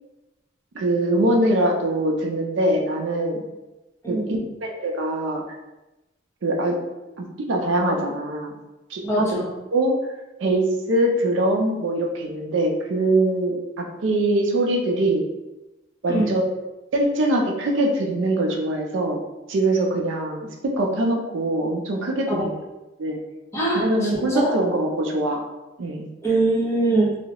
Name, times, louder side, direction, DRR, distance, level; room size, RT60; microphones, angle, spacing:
voice 1, 0.7-3.4 4.1-5.4 6.4-6.8 7.2-8.5 8.9-9.4 9.7-9.9 10.4-15.2 16.0-16.5 16.9-19.2 19.5-20.5 20.8-22.5 23.0-23.2 23.7-25.4 25.8-26.1, right 1 dB, 70° right, 1 dB, 0.4 m, -23 dB
voice 2, 9.0-9.5 16.1-16.3 22.3-22.5 23.5-24.5 26.2-27.3, right 2 dB, 15° left, -7 dB, 0.7 m, -23 dB
2.3 x 2.0 x 2.8 m, 1.0 s
head